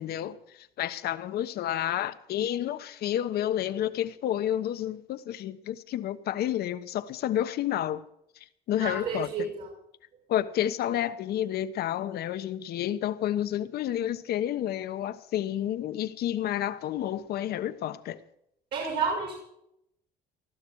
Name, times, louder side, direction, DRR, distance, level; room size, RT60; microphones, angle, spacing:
voice 1, 0.0-8.0 8.4-9.5 10.3-18.2, left 11 dB, 70° left, 1.1 m, -30 dB
voice 2, 8.8-9.7 18.7-19.3, right 5 dB, 75° right, 6.6 m, -30 dB
20.0 x 14.0 x 4.7 m
cardioid pair, 110°, 17 cm